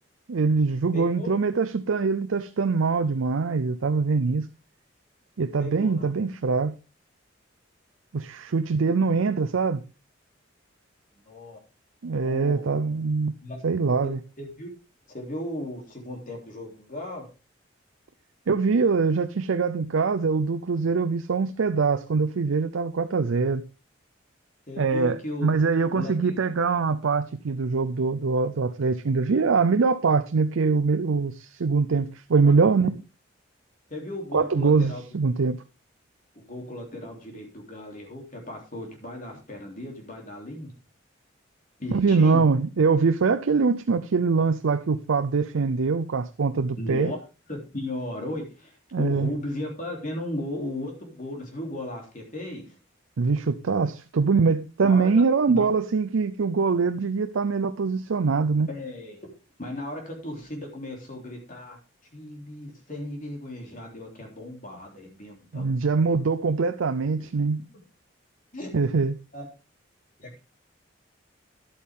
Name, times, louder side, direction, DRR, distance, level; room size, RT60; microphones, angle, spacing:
voice 1, 0.3-4.5 5.4-6.7 8.1-9.8 12.0-13.3 13.6-14.2 18.5-23.6 24.8-33.0 34.3-35.6 41.9-47.1 48.9-49.3 53.2-58.7 65.5-67.6 68.7-69.2, right 4 dB, 90° right, 0.5 m, -23 dB
voice 2, 0.9-1.3 5.6-6.1 11.1-11.6 12.2-12.7 13.4-13.6 14.0-14.1 14.4-14.7 15.1-17.2 24.7-26.3 32.4-32.5 32.8-32.9 33.9-35.0 36.3-40.7 41.8-42.4 46.8-47.2 47.5-52.8 54.8-55.1 55.5-55.6 58.7-59.3 59.6-61.8 62.1-66.0 68.5-68.7 69.3-69.5 70.2-70.4, left 1 dB, 40° left, 3.3 m, -36 dB
11.5 x 8.4 x 3.7 m
head